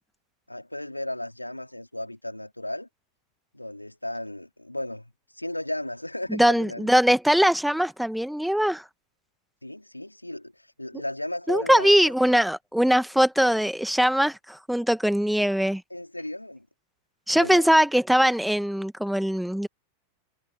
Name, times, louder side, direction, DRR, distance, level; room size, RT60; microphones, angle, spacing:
voice 1, 0.5-2.9 3.5-6.9 9.6-11.9 15.9-16.7 17.3-17.7, left 1 dB, 85° left, 3.5 m, -35 dB
voice 2, 6.3-8.8 11.5-15.8 17.3-19.7, equal, ahead, 2.0 m, -21 dB
figure-of-eight pair, 90°, 0 cm